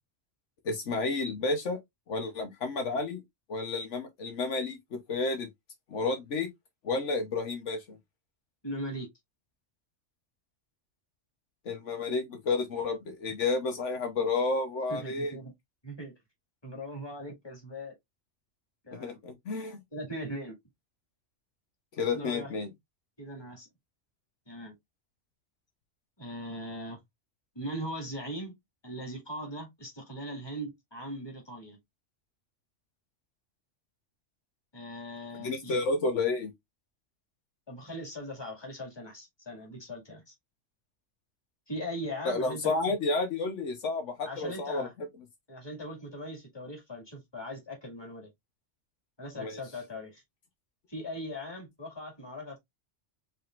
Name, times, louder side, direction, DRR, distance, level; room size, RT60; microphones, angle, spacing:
voice 1, 0.6-1.8 2.1-3.2 3.5-5.5 5.9-6.5 6.8-8.0 11.6-15.4 18.9-19.8 22.0-22.7 35.4-36.5 42.2-44.9 49.4-49.6, left 3 dB, 75° left, 1.3 m, -31 dB
voice 2, 8.6-9.1 14.9-15.5 15.8-16.1 16.6-17.9 18.8-19.2 19.9-20.5 22.1-22.5 23.2-23.7 24.5-24.7 26.2-27.0 27.6-28.5 28.8-31.8 34.7-35.8 37.7-40.3 41.7-42.9 44.2-44.9 45.5-48.3 49.2-50.2 50.9-52.6, equal, 20° left, 2.2 m, -40 dB
5.2 x 3.6 x 2.4 m
omnidirectional pair, 1.2 m